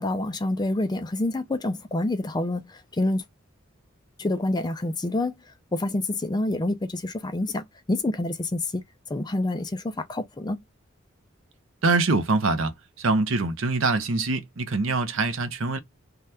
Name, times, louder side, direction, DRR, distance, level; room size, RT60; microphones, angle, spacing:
voice 1, 0.0-2.7 3.0-3.2 4.2-5.3 5.7-8.6 9.1-10.6, left 2 dB, 20° left, 0.4 m, -27 dB
voice 2, 11.8-15.8, right 3 dB, 80° right, 0.7 m, -24 dB
2.8 x 2.3 x 3.3 m
head